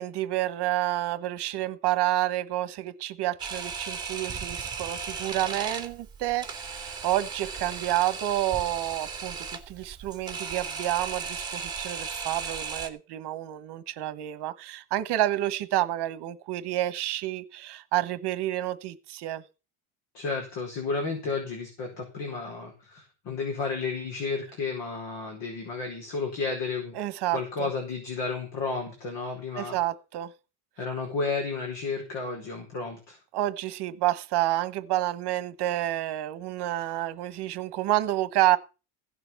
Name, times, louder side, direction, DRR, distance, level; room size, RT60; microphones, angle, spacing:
voice 1, 0.0-19.4 26.9-27.7 29.6-30.3 33.3-38.6, right 14 dB, 55° right, 1.1 m, -29 dB
Camera, 3.4-12.9, right 5 dB, 10° right, 2.2 m, -36 dB
voice 2, 20.1-27.0 27.3-29.8 30.8-33.2, left 4 dB, 60° left, 4.7 m, -32 dB
16.0 x 6.8 x 7.0 m
cardioid pair, 180°, 48 cm